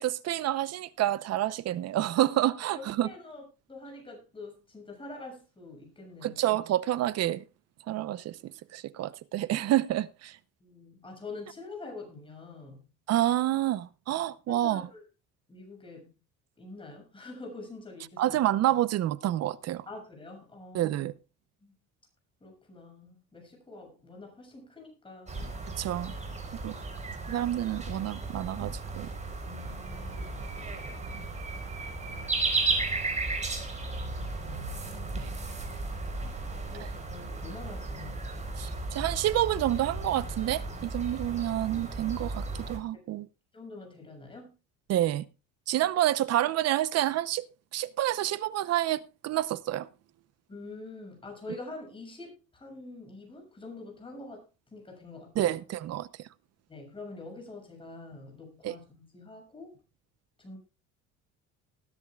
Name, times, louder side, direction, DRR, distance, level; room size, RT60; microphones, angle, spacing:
voice 1, 0.0-3.1 6.2-7.4 7.9-8.4 8.7-10.4 13.1-14.8 18.2-19.8 20.7-21.1 25.8-26.1 26.6-26.8 27.3-29.1 36.8-36.9 38.6-38.7 38.9-43.3 44.9-45.2 45.7-47.4 47.7-49.9 55.4-56.1 58.6-58.7, right 13 dB, 55° right, 0.8 m, -28 dB
voice 2, 2.7-3.4 3.7-6.4 10.6-12.8 14.5-15.0 15.5-16.1 16.6-18.4 19.9-21.0 21.6-21.7 22.4-25.5 29.4-30.5 30.9-31.4 32.0-32.5 34.1-35.4 36.7-38.3 42.9-43.0 43.5-44.5 50.5-54.4 54.7-55.6 56.7-59.8 60.4-60.6, left 3 dB, 15° left, 7.1 m, -45 dB
sound 1, 25.3-42.8, right 3 dB, 20° right, 4.2 m, -35 dB
20.0 x 11.0 x 2.4 m
cardioid pair, 125°, 31 cm